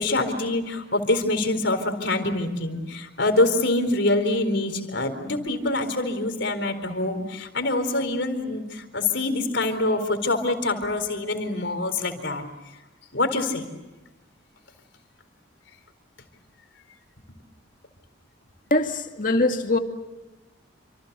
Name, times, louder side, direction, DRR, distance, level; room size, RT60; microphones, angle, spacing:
voice 1, 0.0-12.4 13.1-13.7, left 2 dB, 60° left, 4.3 m, -25 dB
voice 2, 18.7-19.8, left 2 dB, 40° left, 2.2 m, -22 dB
28.5 x 27.0 x 6.9 m
head